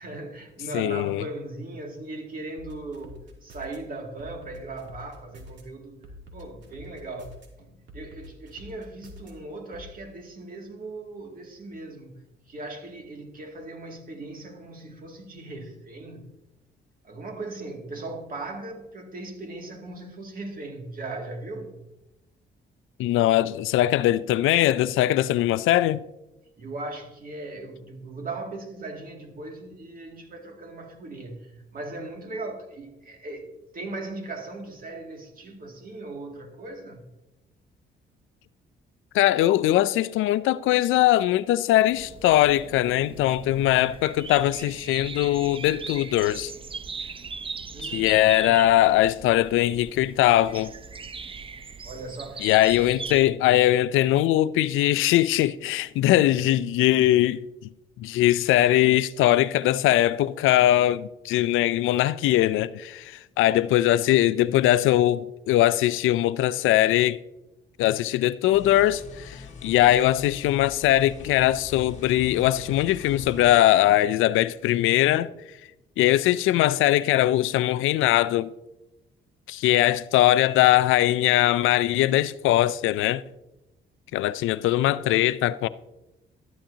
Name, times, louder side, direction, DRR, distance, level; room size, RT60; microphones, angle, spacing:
voice 1, 0.0-6.0 6.3-16.3 17.0-21.8 26.6-33.5 33.7-37.1 47.7-48.7 51.8-52.6, right 2 dB, 45° right, 2.4 m, -38 dB
voice 2, 0.7-1.2 23.0-26.0 39.1-46.5 47.9-50.7 52.4-57.4 58.0-67.2 67.8-75.3 76.0-78.5 79.5-83.2 84.1-85.7, left 14 dB, 90° left, 0.5 m, -21 dB
sound 1, 2.6-3.8 4.2-5.6 6.0-7.5 7.9-9.3 9.7-9.9, left 1 dB, 65° right, 2.7 m, -46 dB
sound 2, 41.9-53.2, right 5 dB, 25° right, 0.6 m, -39 dB
sound 3, 68.5-73.6, left 4 dB, 35° left, 1.8 m, -44 dB
13.5 x 11.5 x 2.8 m
cardioid pair, 90°, 20 cm